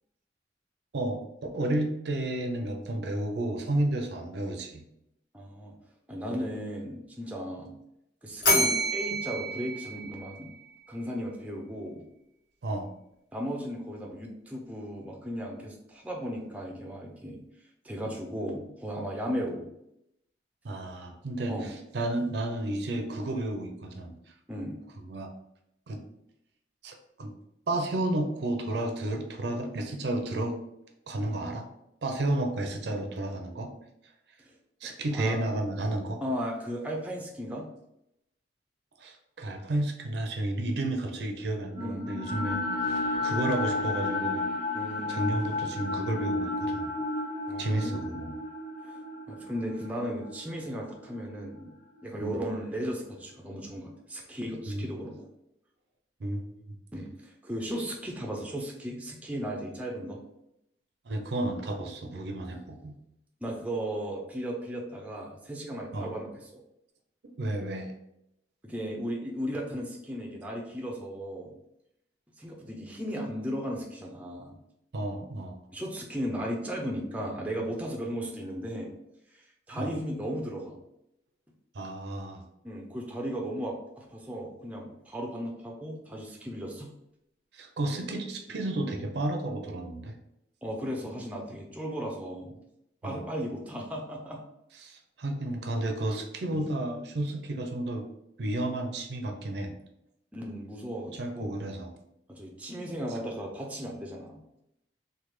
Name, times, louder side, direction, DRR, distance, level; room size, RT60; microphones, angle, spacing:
voice 1, 1.5-4.8 12.6-12.9 20.6-24.2 25.1-25.3 25.9-26.0 26.8-27.3 27.7-30.6 31.1-31.7 32.0-33.7 34.8-36.2 39.0-44.5 45.1-47.0 47.6-48.4 52.2-52.4 54.7-54.8 56.2-56.8 61.1-63.0 65.9-66.1 67.4-67.9 74.9-75.6 79.8-79.9 81.7-82.5 87.5-90.1 93.0-93.2 94.8-98.1 98.4-99.8 101.2-101.9, right 1 dB, 65° right, 4 dB, 0.5 m, -32 dB
voice 2, 5.3-5.7 6.1-7.7 8.2-10.5 10.9-12.0 13.3-17.4 17.8-19.7 21.5-21.7 24.5-24.8 34.4-34.5 35.1-35.4 36.2-37.7 41.8-42.1 44.7-45.4 47.5-48.2 48.9-49.0 49.3-51.7 52.0-55.2 56.9-60.2 63.4-66.5 68.6-71.5 72.4-74.6 75.7-78.9 79.3-80.8 82.6-86.9 90.6-92.6 93.0-94.4 96.5-96.6 100.3-101.5 102.3-104.4, equal, 10° right, -1 dB, 0.4 m, -36 dB
Bell, 8.4-10.7, equal, 85° left, 1.3 m, -28 dB
sound 1, 41.7-51.9, left 2 dB, 55° left, 0.5 m, -33 dB
3.2 x 2.2 x 3.0 m, 0.82 s
head